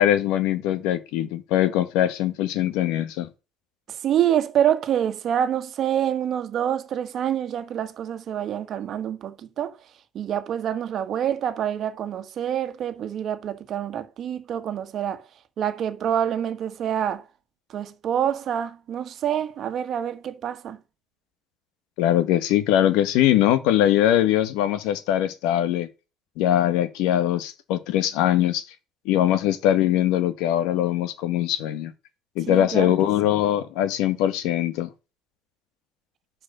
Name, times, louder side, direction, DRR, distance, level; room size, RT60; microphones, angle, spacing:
voice 1, 0.0-3.3 22.0-25.9 26.4-28.6 29.0-31.9 32.4-34.9, left 12 dB, 75° left, 1.2 m, -22 dB
voice 2, 3.9-9.8 10.1-15.2 15.6-17.2 17.7-20.8 32.5-32.9, right 9 dB, 50° right, 1.4 m, -26 dB
9.9 x 4.7 x 6.6 m
supercardioid pair, 110°, 0 cm